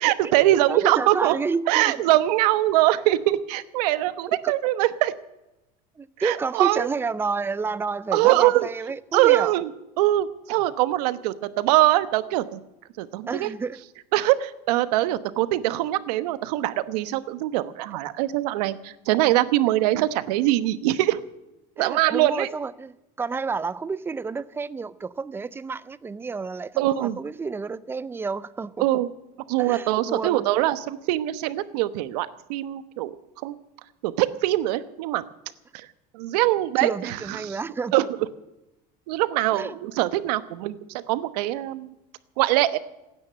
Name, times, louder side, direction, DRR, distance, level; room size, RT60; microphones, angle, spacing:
voice 1, 0.0-1.4 1.7-5.1 6.2-6.9 8.1-8.7 9.1-9.7 10.0-12.6 13.0-13.5 14.1-21.2 21.8-22.5 26.8-27.2 28.8-29.1 29.5-33.1 33.4-33.5 34.0-35.2 35.7-35.9 36.1-37.6 37.9-38.1 39.1-41.9 42.4-42.8, right 15 dB, 85° right, 14 dB, 1.1 m, -23 dB
voice 2, 0.5-1.9 4.4-4.5 6.0-9.5 13.3-13.8 21.8-28.9 29.6-30.5 36.8-37.9 39.5-39.8, right 4 dB, 10° right, 17 dB, 0.5 m, -30 dB
16.5 x 9.7 x 8.7 m, 0.95 s
cardioid pair, 150°, 20 cm